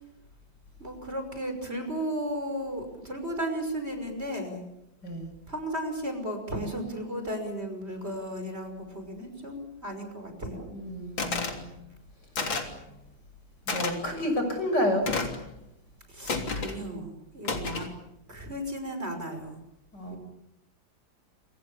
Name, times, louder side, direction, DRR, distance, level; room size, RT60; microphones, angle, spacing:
voice 1, 0.8-4.6 5.5-10.7 16.1-17.9 18.3-19.6 20.1-20.2, right 1 dB, 30° right, 6 dB, 6.1 m, -34 dB
voice 2, 10.7-11.8 13.7-15.1 19.9-20.2, left 1 dB, 60° left, 6 dB, 7.2 m, -30 dB
sound 1, 11.2-11.6 12.4-12.8 13.7-13.9 15.1-15.4 16.3-16.8 17.5-17.9, left 4 dB, 75° left, 4.1 m, -30 dB
28.5 x 26.5 x 7.1 m, 0.84 s
omnidirectional pair, 2.1 m